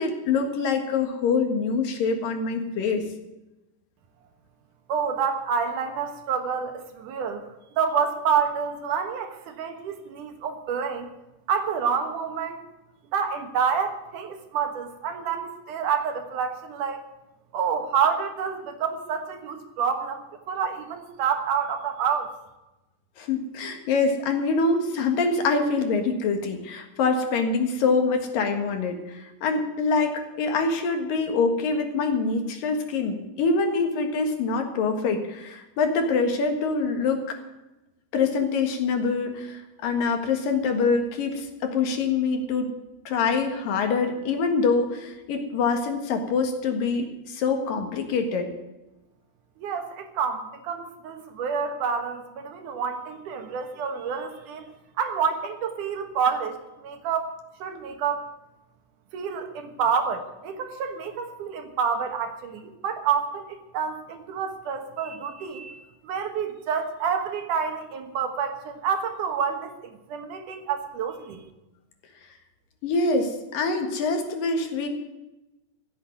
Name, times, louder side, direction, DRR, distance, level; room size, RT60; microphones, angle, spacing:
voice 1, 0.0-3.0 23.2-37.4 38.1-42.7 43.1-48.5 72.8-74.9, left 4 dB, 70° left, 4 dB, 3.4 m, -25 dB
voice 2, 4.9-7.5 7.8-11.1 11.5-12.6 13.1-17.0 17.5-22.3 49.6-54.7 55.0-58.3 59.1-69.7 70.1-71.5, right 6 dB, 65° right, 6 dB, 2.7 m, -28 dB
15.0 x 8.1 x 9.5 m, 1.0 s
omnidirectional pair, 4.2 m